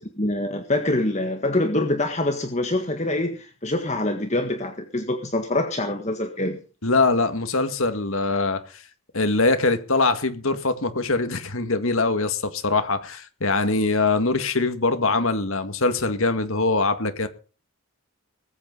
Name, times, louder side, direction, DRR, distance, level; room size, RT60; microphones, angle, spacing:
voice 1, 0.2-6.6, left 1 dB, 30° left, 1.7 m, -25 dB
voice 2, 6.8-8.6 9.1-17.3, left 3 dB, 70° left, 2.0 m, -22 dB
20.0 x 8.7 x 5.4 m
head